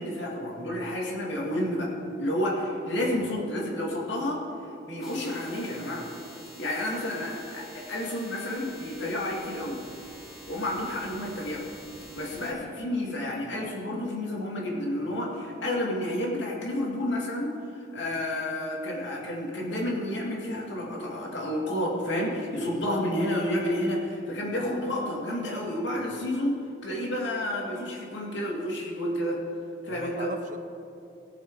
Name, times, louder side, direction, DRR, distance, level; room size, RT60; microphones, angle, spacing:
voice 1, 0.0-1.9 2.2-4.5 4.8-6.1 6.6-9.8 10.5-11.6 12.2-26.6 26.8-29.4 29.8-30.3, left 1 dB, 70° left, -2 dB, 2.3 m, -30 dB
voice 2, 3.0-3.5 22.6-23.0 26.0-26.3 29.8-30.6, right 3 dB, 40° right, 8 dB, 0.7 m, -40 dB
sound 1, 5.0-12.5, right 1 dB, ahead, 2.5 m, -48 dB
17.5 x 6.6 x 4.7 m, 2.8 s
head